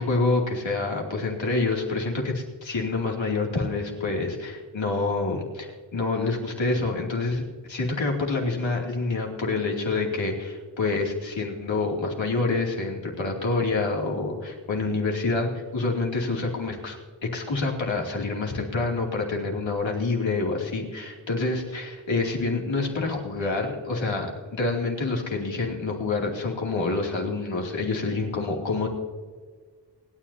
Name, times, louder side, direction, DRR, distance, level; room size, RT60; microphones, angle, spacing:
voice 1, 0.0-28.9, left 3 dB, 90° left, -1 dB, 2.8 m, -27 dB
28.5 x 10.0 x 2.8 m, 1.5 s
wide cardioid pair, 60°, 44 cm